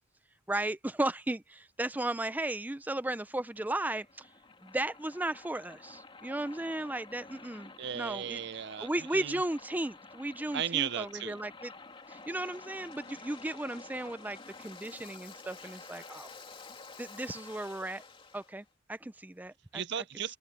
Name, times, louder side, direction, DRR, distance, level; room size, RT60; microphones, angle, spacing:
voice 1, 0.5-4.3 4.6-8.4 8.8-11.7 12.1-16.3 17.0-18.0 18.3-19.8, right 1 dB, 10° right, 0.4 m, -35 dB
Waves surf, 2.7-18.5, left 3 dB, 25° left, 2.6 m, -51 dB
voice 2, 7.8-9.4 10.5-11.4 19.7-20.4, right 9 dB, 60° right, 0.6 m, -35 dB
open air
head